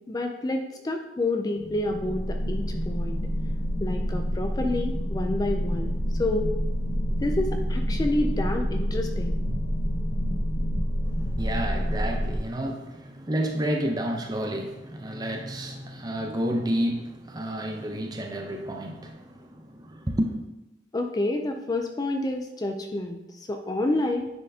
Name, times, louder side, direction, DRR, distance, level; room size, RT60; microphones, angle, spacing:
voice 1, 0.1-3.2 3.8-5.9 6.2-6.5 7.2-9.4 20.9-24.3, left 2 dB, 20° left, 0.4 m, -28 dB
sound 1, 1.6-12.4, equal, 85° left, 0.9 m, -28 dB
voice 2, 11.2-20.4, equal, 25° right, 0.6 m, -30 dB
9.6 x 4.3 x 2.8 m
head